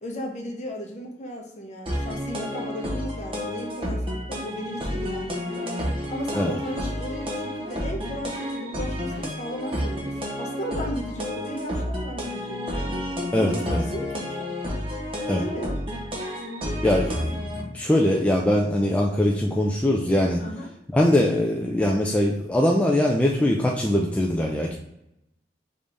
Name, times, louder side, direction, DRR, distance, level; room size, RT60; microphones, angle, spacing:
voice 1, 0.0-5.7 6.1-13.0 13.4-14.5 15.3-15.8 20.4-20.7, equal, 40° left, 1 dB, 0.8 m, -35 dB
sound 1, 1.9-17.6, equal, 30° right, 0.8 m, -30 dB
voice 2, 13.3-13.8 15.3-15.4 16.8-20.4 20.9-24.7, left 1 dB, 5° left, -1 dB, 0.3 m, -22 dB
5.2 x 2.6 x 3.3 m, 0.83 s
head